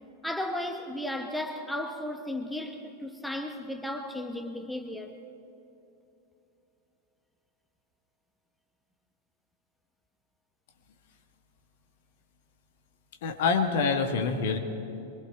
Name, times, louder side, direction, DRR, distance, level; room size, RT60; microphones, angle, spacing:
voice 1, 0.2-5.2, left 1 dB, 5° left, 1.4 m, -35 dB
voice 2, 13.2-14.6, left 5 dB, 55° left, 1.7 m, -26 dB
24.0 x 24.0 x 4.5 m
figure-of-eight pair, 90°, 0 cm